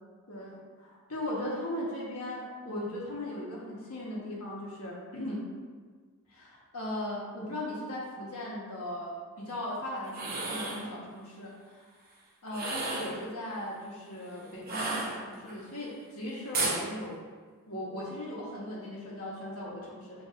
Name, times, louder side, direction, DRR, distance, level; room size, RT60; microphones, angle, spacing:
voice 1, 0.3-5.4 6.3-11.9 12.4-17.2 17.7-20.2, left 1 dB, 75° left, -5 dB, 1.3 m, -38 dB
sound 1, 10.0-10.9 12.5-13.2 14.6-15.5 16.5-16.8, right 2 dB, 45° right, 0.8 m, -32 dB
6.0 x 3.5 x 2.5 m, 1.5 s
head